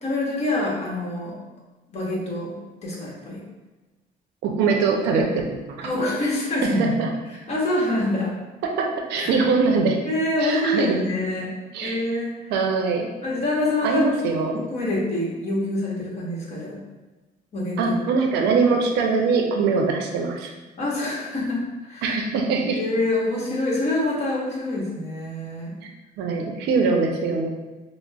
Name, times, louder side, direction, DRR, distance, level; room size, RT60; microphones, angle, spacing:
voice 1, 0.0-1.4 1.9-2.6 2.8-3.4 5.8-6.8 7.5-8.3 9.2-9.3 10.1-11.5 11.8-12.5 13.2-14.1 14.5-16.8 17.5-17.9 20.8-22.2 22.7-25.8, left 2 dB, 40° left, -4 dB, 1.1 m, -26 dB
voice 2, 4.4-5.9 6.6-7.1 8.6-10.0 10.4-11.0 11.7-12.0 12.5-13.1 13.8-14.6 17.8-20.5 22.0-22.8 26.2-27.5, right 4 dB, 80° right, 2 dB, 0.5 m, -22 dB
4.9 x 2.0 x 2.3 m, 1.1 s
cardioid pair, 110°, 17 cm